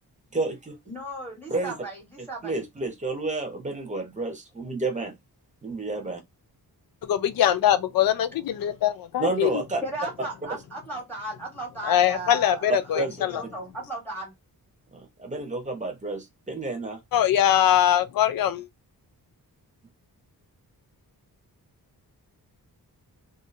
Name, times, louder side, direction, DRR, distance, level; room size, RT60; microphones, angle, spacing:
voice 1, 0.3-0.8 1.5-1.7 2.4-5.1 5.6-6.2 9.2-9.8 13.0-13.2 13.4-13.5 14.9-17.0, right 2 dB, 20° right, 0.8 m, -30 dB
voice 2, 0.9-2.6 9.8-14.3, right 1 dB, 5° left, 1.1 m, -36 dB
voice 3, 7.1-9.5 11.8-13.4 17.1-18.7, left 11 dB, 65° left, 0.5 m, -22 dB
2.7 x 2.6 x 2.5 m
wide cardioid pair, 145°, 38 cm